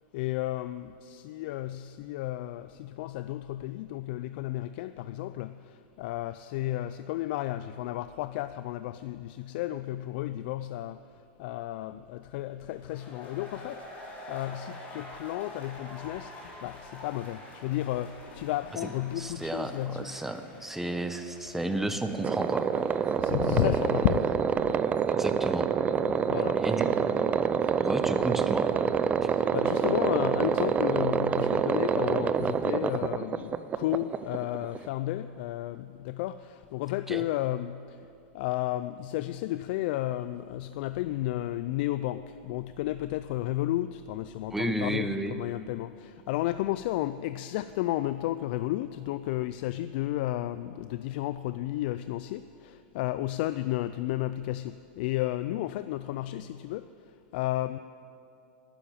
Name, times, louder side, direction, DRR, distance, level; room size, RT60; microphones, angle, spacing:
voice 1, 0.1-11.1 11.4-20.2 23.2-24.8 26.0-26.6 29.3-38.1 38.3-57.8, left 15 dB, 65° left, 12 dB, 0.4 m, -33 dB
sound 1, 12.7-24.4, left 1 dB, 25° left, 3.5 m, -48 dB
voice 2, 19.2-22.6 25.1-25.7 26.6-26.9 27.8-28.7 37.1-37.2 44.5-45.3, right 1 dB, 5° right, 8 dB, 0.9 m, -32 dB
sound 2, 22.2-34.9, right 7 dB, 25° right, 0.5 m, -27 dB
12.0 x 10.0 x 9.0 m, 2.5 s
supercardioid pair, 130°, 6 cm